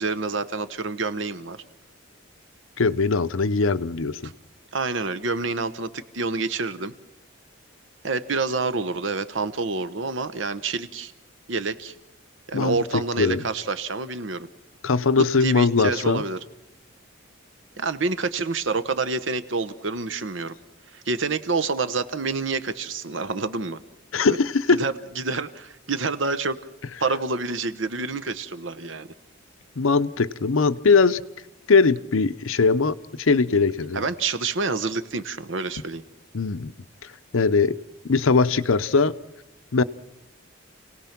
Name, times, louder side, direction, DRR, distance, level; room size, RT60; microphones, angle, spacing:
voice 1, 0.0-1.6 4.2-4.3 4.7-6.9 8.0-11.1 11.5-11.9 12.5-14.5 15.4-16.4 17.8-20.5 20.9-23.8 24.3-24.4 24.7-26.6 27.0-29.1 33.9-36.0, right 4 dB, 70° right, 12 dB, 1.0 m, -28 dB
voice 2, 2.8-4.2 12.5-13.4 14.8-16.2 24.1-24.8 29.8-31.2 31.7-34.0 36.3-36.7 37.3-37.8 38.1-39.1 39.7-39.8, left 4 dB, 85° left, 13 dB, 0.7 m, -20 dB
29.0 x 18.0 x 5.9 m, 0.86 s
head